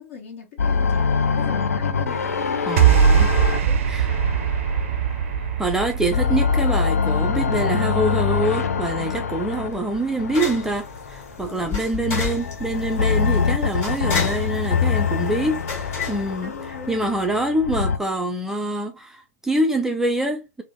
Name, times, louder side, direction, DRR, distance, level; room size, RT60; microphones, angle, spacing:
voice 1, 0.0-2.9 3.5-4.1 11.4-11.8 16.4-17.0, left 6 dB, 55° left, 1.4 m, -40 dB
sound 1, 0.6-5.5 5.9-11.2 12.0-18.0, left 5 dB, 80° left, 0.4 m, -24 dB
voice 2, 2.7-3.5 3.9-4.2 5.6-16.5 16.9-20.6, right 1 dB, 5° right, 0.4 m, -25 dB
sound 2, 2.8-9.2, right 7 dB, 60° right, 0.5 m, -21 dB
sound 3, 8.8-17.1, left 5 dB, 30° left, 1.6 m, -33 dB
3.3 x 2.1 x 2.9 m
figure-of-eight pair, 105°, 8 cm